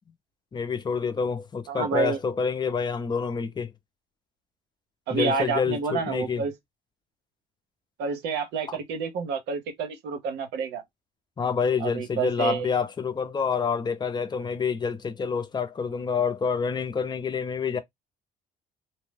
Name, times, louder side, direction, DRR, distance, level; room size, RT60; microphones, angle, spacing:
voice 1, 0.5-3.7 5.1-6.4 8.7-8.8 11.4-17.8, left 6 dB, 25° left, 0.6 m, -27 dB
voice 2, 1.7-2.2 5.1-6.5 8.0-10.8 11.8-12.7, right 5 dB, 80° right, 0.8 m, -29 dB
2.7 x 2.1 x 3.2 m
cardioid pair, 110°, 17 cm